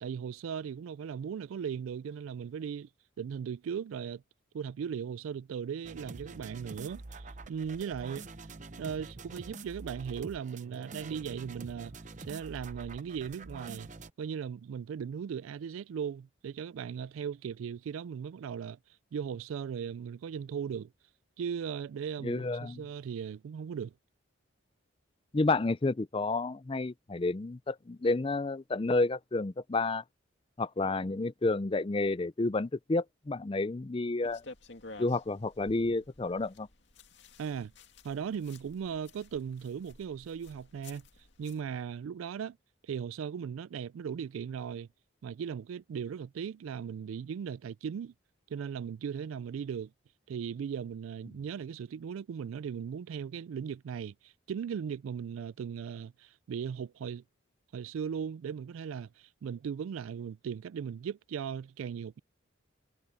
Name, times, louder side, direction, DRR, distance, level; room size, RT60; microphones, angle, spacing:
voice 1, 0.0-2.9 3.2-4.2 4.5-8.3 8.8-11.9 12.3-13.9 14.2-18.8 19.1-20.9 21.4-23.9 37.4-37.7 38.0-41.0 41.4-42.6 42.8-44.9 45.2-48.1 48.5-49.9 50.3-57.2 57.7-62.2, right 7 dB, 85° right, 0.3 m, -38 dB
sound 1, 5.8-14.1, right 3 dB, 40° right, 0.8 m, -46 dB
voice 2, 22.2-22.8 25.3-30.0 30.6-34.4 35.0-36.7, left 3 dB, 25° left, 0.5 m, -30 dB
sound 2, 34.2-41.6, left 3 dB, 60° left, 2.6 m, -53 dB
head